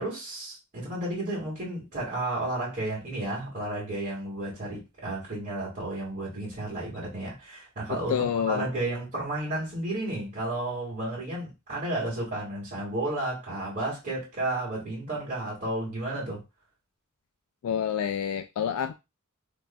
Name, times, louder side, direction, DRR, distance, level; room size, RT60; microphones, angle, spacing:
voice 1, 0.0-8.2 8.5-16.4, right 2 dB, 40° right, 1.9 m, -32 dB
voice 2, 7.9-8.7 17.6-18.9, left 8 dB, 85° left, 0.3 m, -28 dB
4.0 x 3.4 x 2.2 m
head